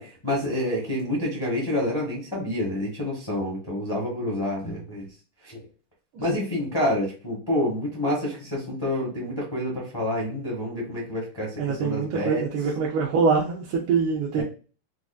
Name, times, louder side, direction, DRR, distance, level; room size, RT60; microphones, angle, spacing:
voice 1, 0.0-5.1 5.4-5.6 6.2-12.4 14.3-14.4, left 1 dB, 30° left, 0.4 m, -28 dB
voice 2, 11.6-14.4, right 5 dB, 90° right, 1.6 m, -24 dB
4.7 x 2.5 x 2.2 m
omnidirectional pair, 2.4 m